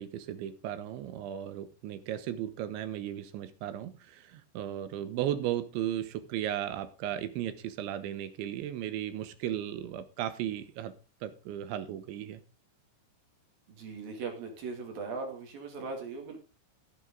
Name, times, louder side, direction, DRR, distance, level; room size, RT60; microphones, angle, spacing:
voice 1, 0.0-10.9 11.2-12.4, right 11 dB, 75° right, 11 dB, 3.3 m, -35 dB
voice 2, 13.7-16.4, right 4 dB, 55° right, 3 dB, 3.7 m, -39 dB
15.5 x 8.7 x 3.8 m, 0.32 s
omnidirectional pair, 5.6 m